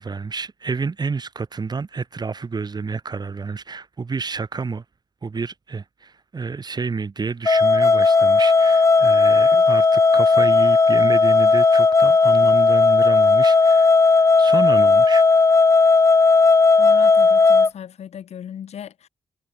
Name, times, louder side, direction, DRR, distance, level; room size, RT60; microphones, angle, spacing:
voice 1, 0.0-4.8 5.2-13.9 14.4-15.3, right 4 dB, 40° right, 0.9 m, -29 dB
sound 1, 7.5-17.7, left 4 dB, 30° left, 0.5 m, -15 dB
voice 2, 16.8-19.1, left 9 dB, 80° left, 3.1 m, -37 dB
cardioid pair, 60°, 11 cm